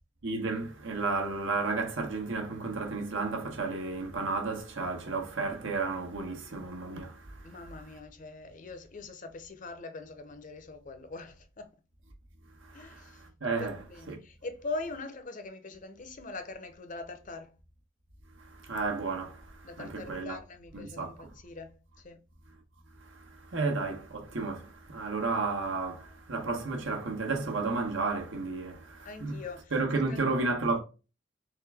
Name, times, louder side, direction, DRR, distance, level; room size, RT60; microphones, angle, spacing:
voice 1, 0.2-7.6 12.6-13.8 14.1-14.2 18.4-20.4 20.7-21.3 23.0-29.4 29.7-30.8, right 3 dB, 75° right, 1.1 m, -33 dB
voice 2, 7.4-11.7 12.7-13.2 13.6-17.5 19.6-21.8 22.0-22.2 29.0-29.7 30.1-30.2, left 3 dB, 40° left, 0.6 m, -42 dB
3.8 x 3.4 x 3.4 m
head